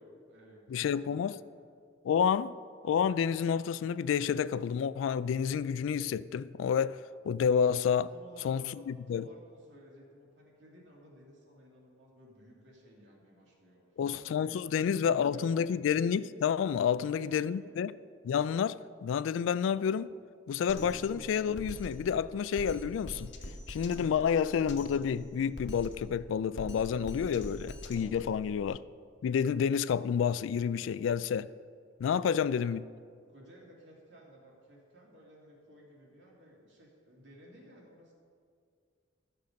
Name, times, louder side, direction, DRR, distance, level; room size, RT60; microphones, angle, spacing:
voice 1, 0.0-1.4 8.1-14.0 14.4-15.7 16.8-17.1 17.4-17.6 28.1-28.3 32.2-32.8 33.3-38.1, equal, 65° right, 2.4 m, -56 dB
voice 2, 0.7-1.4 2.0-2.5 2.8-8.1 8.4-8.6 9.1-9.3 14.0-17.9 18.2-20.1 20.5-23.3 23.7-28.8 29.2-31.5 32.0-32.8, left 7 dB, 90° left, 0.3 m, -29 dB
Drum kit, 20.7-28.7, left 1 dB, 65° left, 1.1 m, -44 dB
13.0 x 6.8 x 5.2 m
head